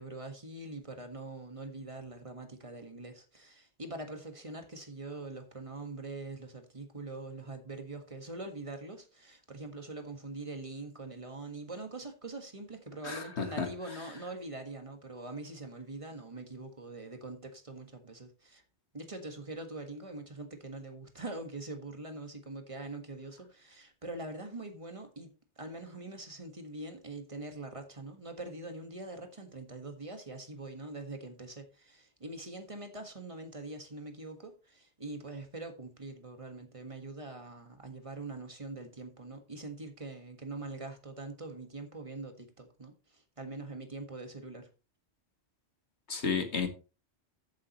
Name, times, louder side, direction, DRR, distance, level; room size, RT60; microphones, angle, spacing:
voice 1, 0.0-18.6 18.9-44.7, right 2 dB, 30° right, 1.6 m, -43 dB
voice 2, 13.0-13.7 46.1-46.7, left 5 dB, 80° left, 1.9 m, -32 dB
14.0 x 7.4 x 3.0 m
omnidirectional pair, 1.1 m